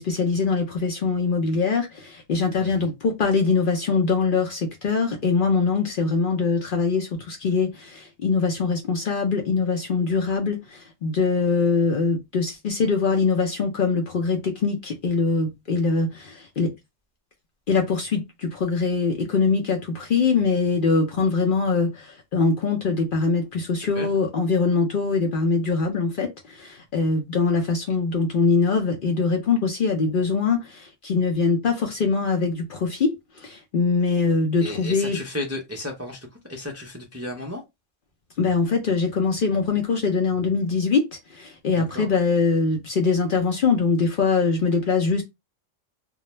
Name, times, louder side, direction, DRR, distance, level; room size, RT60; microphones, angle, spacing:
voice 1, 0.0-16.7 17.7-35.2 38.4-45.2, left 4 dB, 55° left, 0.6 m, -23 dB
voice 2, 2.6-2.9 23.8-24.1 34.6-37.6 41.7-42.1, left 1 dB, 25° right, 0.3 m, -34 dB
2.3 x 2.1 x 2.9 m
omnidirectional pair, 1.3 m